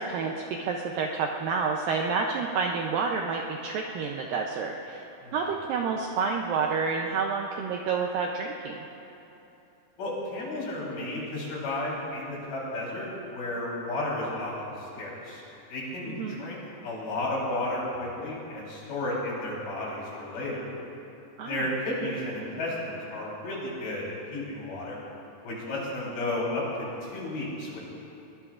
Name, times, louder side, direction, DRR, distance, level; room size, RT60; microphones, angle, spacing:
voice 1, 0.0-8.8 16.0-16.4 21.4-21.7, right 5 dB, 80° right, 1 dB, 2.0 m, -29 dB
voice 2, 10.0-15.4 15.7-20.7 21.4-25.0 25.4-27.8, left 1 dB, 60° left, -6 dB, 5.5 m, -33 dB
21.5 x 20.0 x 2.5 m, 3.0 s
omnidirectional pair, 4.7 m